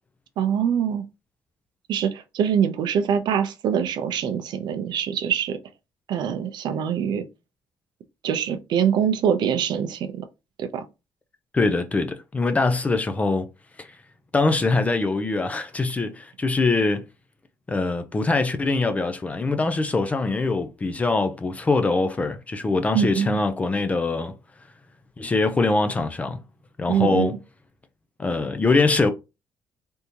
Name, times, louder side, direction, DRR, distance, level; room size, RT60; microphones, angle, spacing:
voice 1, 0.4-1.0 1.9-5.6 6.1-7.2 8.2-10.3 10.6-10.8 22.9-23.4 26.9-27.4, right 8 dB, 65° right, 0.5 m, -24 dB
voice 2, 11.5-13.5 13.8-14.0 14.3-17.0 17.7-24.3 25.2-26.4 26.8-27.4 28.2-29.1, left 3 dB, 15° left, 0.4 m, -23 dB
3.5 x 2.7 x 2.8 m
cardioid pair, 175°, 8 cm